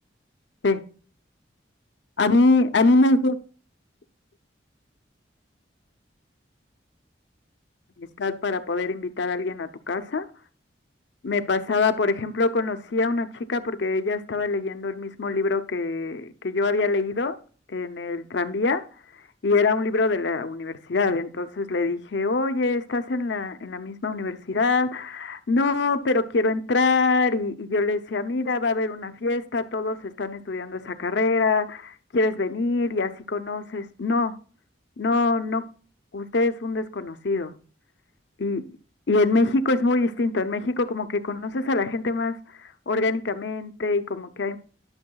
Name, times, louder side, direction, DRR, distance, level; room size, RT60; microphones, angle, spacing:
voice 1, 2.2-3.4 8.0-10.3 11.2-17.4 17.7-18.8 19.4-34.3 35.0-35.6 36.1-37.5 38.4-38.6 39.1-42.3 42.9-44.6, left 3 dB, 70° left, 10 dB, 0.6 m, -24 dB
11.5 x 6.4 x 2.3 m, 0.40 s
head